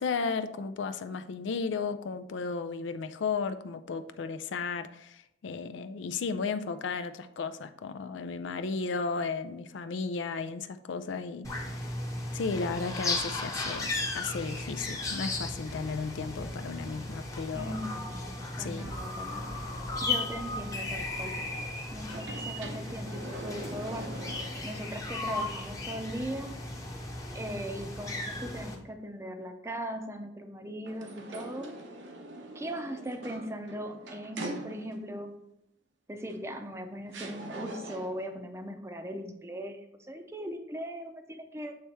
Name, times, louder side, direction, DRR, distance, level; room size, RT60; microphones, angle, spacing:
voice 1, 0.0-11.9 12.3-17.7 18.6-18.9, left 4 dB, 80° left, 10 dB, 0.4 m, -34 dB
sound 1, 11.4-28.7, left 2 dB, 20° left, 0.9 m, -36 dB
voice 2, 17.5-19.6 20.0-21.4 21.9-24.2 24.6-26.6 27.3-31.8 32.5-35.4 36.1-41.7, equal, 15° right, 6 dB, 0.6 m, -39 dB
sound 2, 18.8-22.0, left 2 dB, 55° left, 0.8 m, -44 dB
sound 3, 22.0-25.0 25.4-25.5 30.8-35.2 36.3-36.4 37.1-38.3, right 1 dB, 80° right, 0.8 m, -43 dB
7.6 x 3.4 x 4.3 m, 0.81 s
head